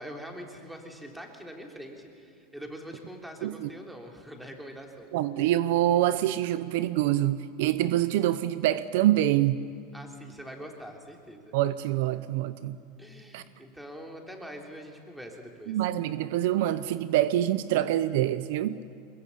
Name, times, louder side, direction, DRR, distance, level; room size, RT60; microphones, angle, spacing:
voice 1, 0.0-5.1 9.9-11.6 13.0-15.8, equal, 5° right, 2 dB, 3.4 m, -43 dB
voice 2, 5.1-9.6 11.5-12.8 13.3-13.4 15.7-18.8, right 13 dB, 70° right, 14 dB, 0.8 m, -25 dB
22.5 x 21.5 x 8.6 m, 2.4 s
supercardioid pair, 120°, 0 cm